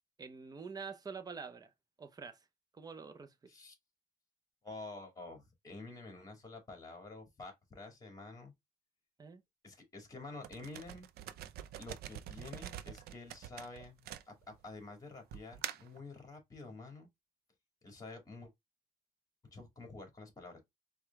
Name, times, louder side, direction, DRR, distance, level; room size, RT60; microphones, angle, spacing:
voice 1, 0.2-1.7 2.0-2.5 2.7-3.3 9.2-9.4 16.6-16.7, right 5 dB, 20° right, 0.7 m, -46 dB
voice 2, 4.6-8.5 9.6-11.1 11.8-17.1 17.8-18.5 19.5-20.6, left 3 dB, 20° left, 2.1 m, -49 dB
sound 1, 10.4-14.7 15.3-16.0, right 11 dB, 65° right, 0.5 m, -45 dB
4.7 x 2.3 x 3.4 m
cardioid pair, 110°, 17 cm